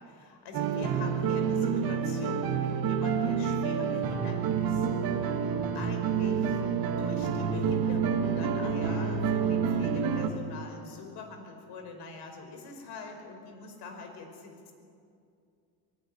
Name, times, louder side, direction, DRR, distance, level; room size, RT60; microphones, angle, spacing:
voice 1, 0.0-4.9 5.3-6.6 7.0-14.7, left 4 dB, 70° left, 5 dB, 5.3 m, -44 dB
sound 1, 0.5-10.3, right 6 dB, 60° right, 2.3 m, -28 dB
23.0 x 17.0 x 9.6 m, 2.4 s
cardioid pair, 105°, 41 cm